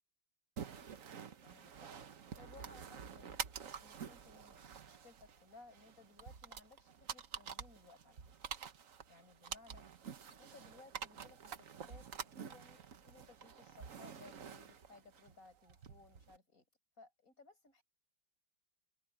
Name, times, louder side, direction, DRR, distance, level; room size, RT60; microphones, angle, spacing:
sound 1, 0.6-16.4, right 7 dB, 50° right, 1.3 m, -49 dB
voice 1, 1.0-1.9 2.3-3.4 3.8-8.2 9.1-9.9 10.4-16.6 17.0-17.8, left 3 dB, 45° left, 7.7 m, -61 dB
open air
omnidirectional pair, 2.1 m